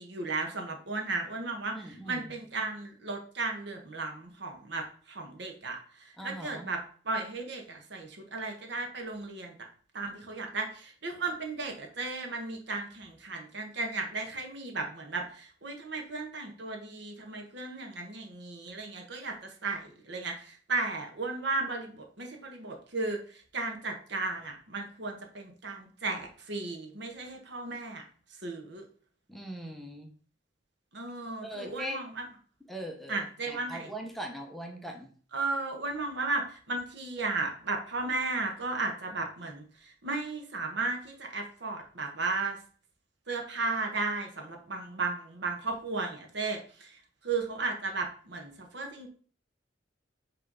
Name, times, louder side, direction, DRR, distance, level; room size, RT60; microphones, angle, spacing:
voice 1, 0.0-9.5 9.9-28.0 28.4-28.8 30.9-32.2 33.1-33.9 35.3-42.6 43.3-49.1, right 3 dB, 65° right, 3 dB, 1.3 m, -35 dB
voice 2, 1.7-2.3 6.2-6.7 29.3-30.1 31.4-32.0 32.7-35.1, equal, ahead, 2 dB, 0.8 m, -40 dB
6.2 x 3.4 x 5.4 m, 0.43 s
head